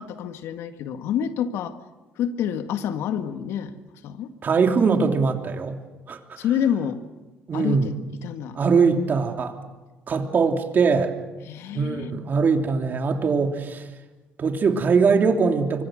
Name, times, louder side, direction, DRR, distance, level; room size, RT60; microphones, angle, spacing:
voice 1, 0.0-1.8 2.2-3.8 4.0-4.3 6.4-7.0 7.5-8.6 11.5-12.1, left 9 dB, 75° left, 8 dB, 1.8 m, -27 dB
voice 2, 4.4-5.8 6.1-6.4 7.5-7.9 8.5-9.6 10.1-11.1 11.7-13.9 14.4-15.8, right 5 dB, 45° right, 4 dB, 3.0 m, -21 dB
25.0 x 24.0 x 6.4 m, 1.2 s
supercardioid pair, 75°, 5 cm